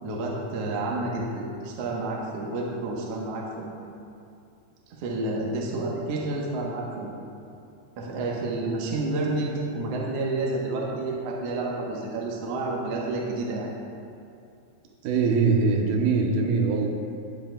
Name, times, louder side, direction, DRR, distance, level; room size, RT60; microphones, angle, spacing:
voice 1, 0.0-3.8 5.0-7.1 8.0-13.7, right 2 dB, 70° right, -3 dB, 1.5 m, -30 dB
voice 2, 15.0-16.9, right 4 dB, 85° right, 1 dB, 2.7 m, -22 dB
18.0 x 7.6 x 2.2 m, 2.5 s
omnidirectional pair, 4.3 m